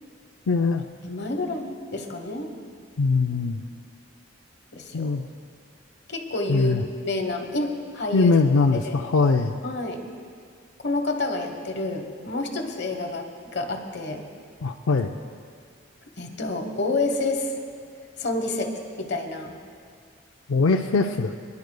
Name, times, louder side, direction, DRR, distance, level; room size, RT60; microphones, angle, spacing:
voice 1, 0.5-0.8 3.0-3.6 4.9-5.2 6.5-6.8 8.1-9.6 14.6-15.1 20.5-21.3, left 4 dB, 90° left, 3 dB, 0.5 m, -21 dB
voice 2, 1.0-2.5 3.3-3.5 4.7-5.1 6.1-6.7 7.0-8.3 8.8-9.0 9.6-10.0 10.8-14.2 16.1-17.5 18.2-19.5, left 2 dB, 55° left, 5 dB, 1.1 m, -29 dB
28.0 x 10.5 x 2.2 m, 2.1 s
head